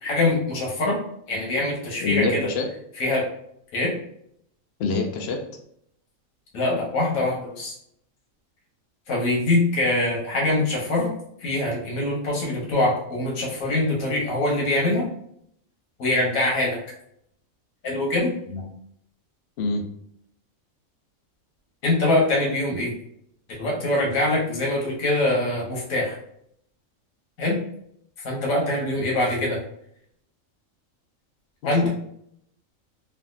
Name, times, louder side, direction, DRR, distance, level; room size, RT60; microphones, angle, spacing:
voice 1, 0.0-1.0 1.3-2.5 3.0-3.2 3.7-3.9 6.5-7.7 9.1-11.1 11.4-15.1 16.0-16.8 17.8-18.7 21.8-22.9 23.5-26.1 27.4-27.6 28.2-29.6 31.6-31.9, left 2 dB, 90° left, -3 dB, 1.4 m, -23 dB
voice 2, 2.0-2.7 4.8-5.4 19.6-19.8 31.6-31.9, left 3 dB, 60° left, 3 dB, 0.7 m, -25 dB
3.4 x 2.5 x 2.4 m, 0.71 s
omnidirectional pair, 1.4 m